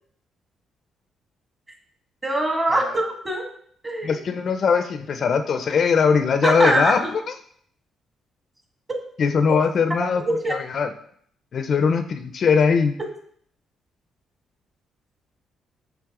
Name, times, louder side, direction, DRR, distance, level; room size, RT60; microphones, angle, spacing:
voice 1, 2.2-3.5 3.8-4.2 6.4-7.1 10.3-10.5, right 1 dB, 20° right, 1 dB, 1.8 m, -22 dB
voice 2, 4.0-7.0 9.2-10.2 10.5-10.9 11.5-12.9, left 6 dB, 55° left, 8 dB, 0.4 m, -20 dB
7.5 x 3.5 x 3.7 m, 0.62 s
cardioid pair, 90°, 0 cm